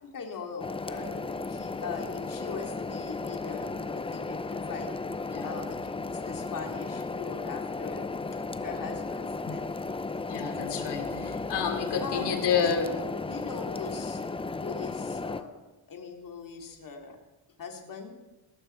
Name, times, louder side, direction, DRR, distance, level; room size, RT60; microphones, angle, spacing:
voice 1, 0.0-4.9 5.4-8.1 8.6-9.7 12.0-12.3 12.6-14.2 14.5-15.6 15.9-17.2 17.6-18.1, left 5 dB, 45° left, 2 dB, 2.7 m, -40 dB
sound 1, 0.6-15.4, left 3 dB, 15° left, 0.6 m, -35 dB
voice 2, 10.3-12.9, left 7 dB, 65° left, 5 dB, 2.8 m, -29 dB
19.0 x 13.0 x 4.5 m, 1.1 s
cardioid pair, 110°, 44 cm